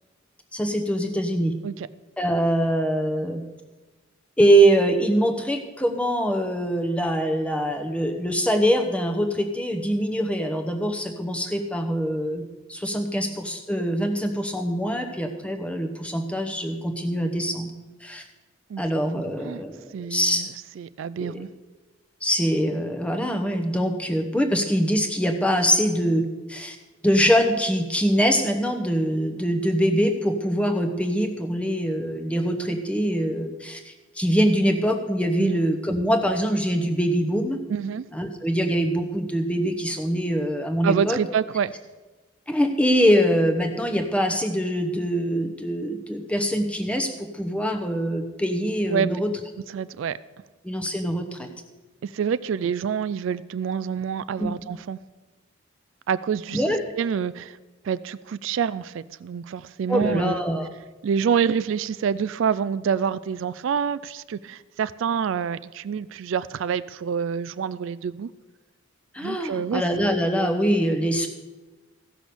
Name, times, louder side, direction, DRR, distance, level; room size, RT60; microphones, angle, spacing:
voice 1, 0.5-1.5 2.2-3.4 4.4-12.4 12.7-17.7 18.0-18.2 18.8-20.4 21.2-21.5 22.2-26.8 27.0-37.6 38.1-41.2 42.5-49.3 50.6-51.5 54.4-54.5 56.5-56.8 59.9-60.7 69.1-71.3, equal, 5° left, 5 dB, 0.9 m, -23 dB
voice 2, 19.1-19.6 19.9-20.5 20.8-21.5 35.4-35.6 37.7-38.1 40.8-41.7 48.9-49.1 49.7-50.2 52.0-55.0 56.1-56.6 57.0-57.6 57.8-60.4 61.0-68.3 69.2-69.8, right 7 dB, 65° right, 16 dB, 0.3 m, -27 dB
15.0 x 6.2 x 6.8 m, 1.2 s
head